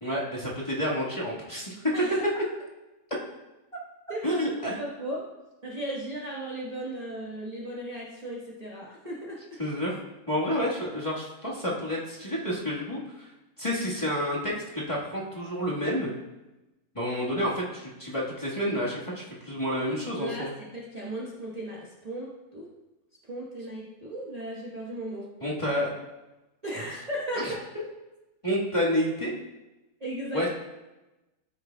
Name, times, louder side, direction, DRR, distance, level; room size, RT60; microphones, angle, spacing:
voice 1, 0.0-1.7 4.2-4.7 9.6-10.0 10.3-13.3 13.6-16.1 16.9-20.5 25.4-25.9 26.8-26.9 27.3-27.5 28.4-29.3 30.3-30.5, equal, 20° left, -7 dB, 1.7 m, -29 dB
voice 2, 4.1-5.2 5.6-9.6 20.1-22.7 23.3-25.3 26.6-27.5 30.0-30.4, right 1 dB, 25° right, -6 dB, 1.3 m, -36 dB
13.5 x 6.5 x 2.3 m, 1.0 s
omnidirectional pair, 1.7 m